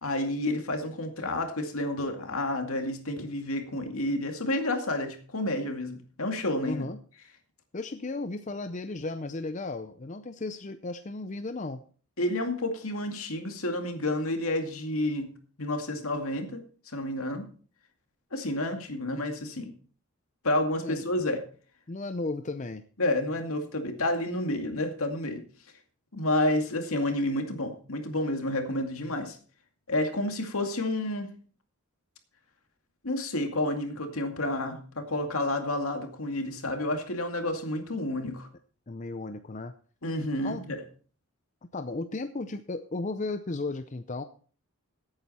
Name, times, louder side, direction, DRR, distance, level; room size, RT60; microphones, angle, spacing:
voice 1, 0.0-6.8 12.2-15.3 15.6-16.6 16.9-17.5 18.3-19.7 20.4-21.4 23.0-25.4 26.1-29.4 29.9-31.3 33.0-38.5 40.0-40.8, left 1 dB, 70° left, 5 dB, 2.3 m, -30 dB
voice 2, 6.6-7.0 7.7-11.8 20.8-21.0 21.9-22.8 38.9-39.7 40.4-40.6 41.7-44.2, left 3 dB, 35° left, 9 dB, 0.5 m, -35 dB
16.5 x 8.9 x 4.2 m, 0.42 s
head